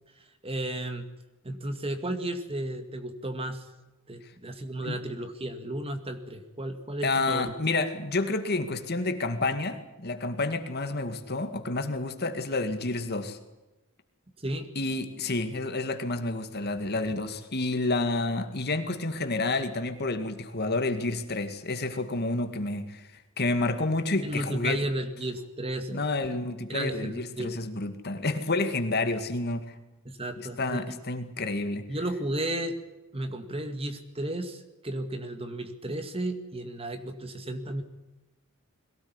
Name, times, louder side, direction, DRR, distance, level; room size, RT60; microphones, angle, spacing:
voice 1, 0.4-1.1 1.4-3.7 4.1-7.5 14.4-14.7 24.2-26.4 26.7-27.5 30.1-30.9 31.9-32.8 33.1-37.8, right 1 dB, 25° right, 8 dB, 2.1 m, -33 dB
voice 2, 7.0-13.4 14.8-24.9 25.9-29.8 30.4-31.8, left 2 dB, 45° left, 8 dB, 2.2 m, -29 dB
22.0 x 18.0 x 9.7 m, 1.0 s
head